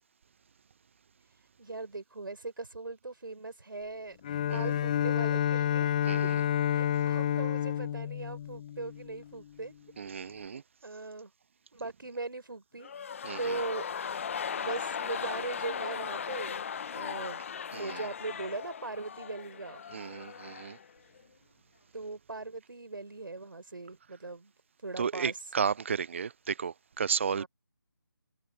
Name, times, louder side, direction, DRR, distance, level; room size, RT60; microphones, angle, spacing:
voice 1, 1.6-4.2 4.5-6.3 6.7-9.7 10.1-11.3 11.7-12.9 13.4-13.9 14.6-17.4 17.7-19.8 21.9-24.5 24.8-25.5 27.3-27.5, right 3 dB, 75° right, 6.8 m, -40 dB
Bowed string instrument, 4.2-9.3, left 10 dB, 20° left, 0.5 m, -29 dB
voice 2, 6.0-6.4 10.0-10.6 13.2-13.6 17.7-18.0 19.9-20.8 25.0-27.4, right 6 dB, 35° right, 0.4 m, -33 dB
sound 1, 12.8-20.9 21.2-21.3, left 7 dB, 35° left, 0.9 m, -38 dB
figure-of-eight pair, 160°, 11 cm